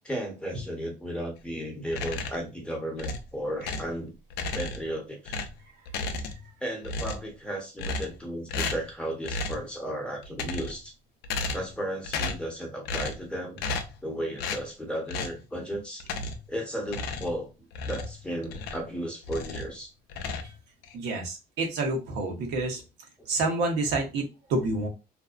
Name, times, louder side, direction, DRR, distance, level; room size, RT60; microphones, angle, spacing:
voice 1, 0.0-4.1 4.5-5.4 6.6-10.9 11.5-13.6 14.0-16.0 16.5-19.9, equal, 5° left, 0 dB, 0.8 m, -34 dB
sound 1, 1.9-2.5 3.0-4.0 4.3-4.9 5.3-6.5 6.8-7.4 7.8-8.2 8.5-8.9 9.2-9.7 10.2-10.9 11.2-11.8 12.0-12.5 12.9-13.3 13.6-14.0 14.4-14.7 15.1-15.4 16.0-16.5 16.9-18.9 19.2-19.7 20.1-20.9, left 3 dB, 75° left, 0.5 m, -34 dB
voice 2, 20.9-22.8 23.3-24.9, right 2 dB, 80° right, 2 dB, 0.8 m, -28 dB
2.6 x 2.1 x 2.3 m, 0.27 s
cardioid pair, 110°, 17 cm